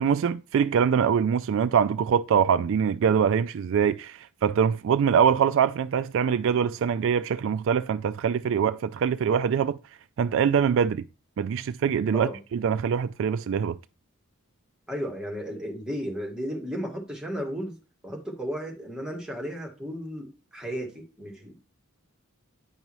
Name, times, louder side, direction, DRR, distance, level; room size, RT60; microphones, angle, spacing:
voice 1, 0.0-9.8 10.2-11.0 11.4-13.8, right 7 dB, 65° right, 0.3 m, -23 dB
voice 2, 14.9-17.8 18.0-21.5, equal, 5° right, 1.9 m, -34 dB
9.7 x 5.4 x 3.1 m
head